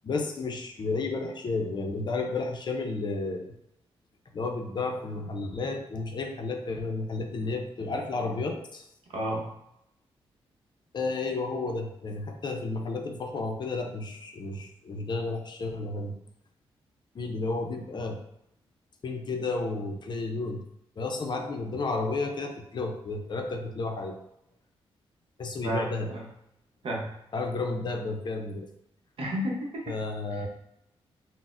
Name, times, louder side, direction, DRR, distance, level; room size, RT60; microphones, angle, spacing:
voice 1, 0.0-3.6 4.3-8.9 10.9-16.2 17.1-18.2 19.0-20.6 21.0-24.2 25.4-26.1 27.3-28.7 29.9-30.5, left 3 dB, 45° left, 3 dB, 0.5 m, -32 dB
voice 2, 9.1-9.5 25.6-26.2 26.8-27.1 29.2-29.9 30.3-30.5, equal, 65° right, -2 dB, 0.8 m, -32 dB
3.9 x 2.0 x 2.4 m, 0.81 s
cardioid pair, 80°, 10 cm